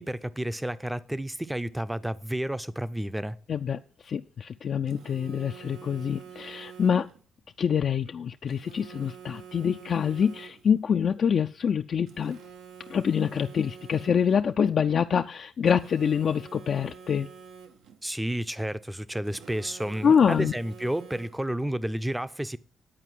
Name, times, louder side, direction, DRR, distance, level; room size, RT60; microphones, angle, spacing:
voice 1, 0.0-3.4 18.0-22.6, right 1 dB, 5° right, 0.5 m, -31 dB
voice 2, 3.5-7.1 7.6-12.4 12.9-17.3 20.0-20.5, left 7 dB, 55° left, 0.4 m, -25 dB
Telephone, 4.9-7.2 8.5-10.8 12.1-14.4 15.7-18.0 19.2-21.6, right 7 dB, 85° right, 0.8 m, -47 dB
10.0 x 4.4 x 7.6 m
cardioid pair, 85°, 0 cm